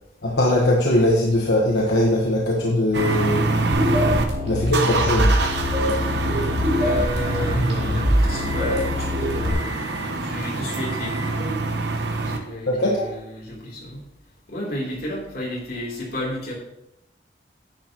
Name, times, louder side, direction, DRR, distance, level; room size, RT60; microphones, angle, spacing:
voice 1, 0.2-3.8 4.4-5.3 12.7-13.1, left 1 dB, 80° left, -2 dB, 1.3 m, -21 dB
sound 1, 2.9-4.2 4.7-12.4, right 3 dB, 75° right, 1.0 m, -26 dB
sound 2, 3.7-9.5, left 1 dB, 40° right, 2.8 m, -23 dB
voice 2, 6.4-9.7 10.2-11.5 12.2-14.0 14.5-16.5, equal, 60° left, -4 dB, 3.2 m, -32 dB
10.5 x 8.8 x 3.0 m, 0.84 s
head